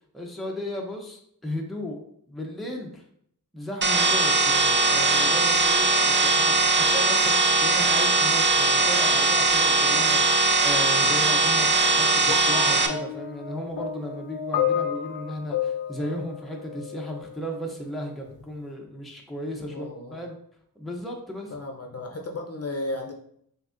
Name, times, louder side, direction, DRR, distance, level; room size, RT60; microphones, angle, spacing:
voice 1, 0.1-2.0 2.3-3.0 3.5-7.3 7.6-20.4 20.8-21.6, equal, ahead, 0 dB, 0.7 m, -35 dB
sound 1, 3.8-12.9, right 3 dB, 30° right, 0.5 m, -20 dB
sound 2, 12.3-17.4 18.3-18.5, left 9 dB, 70° left, 0.5 m, -31 dB
voice 2, 19.7-20.2 21.5-23.1, left 2 dB, 40° left, 1 dB, 0.7 m, -34 dB
6.0 x 2.6 x 2.6 m, 0.68 s
wide cardioid pair, 75°, 39 cm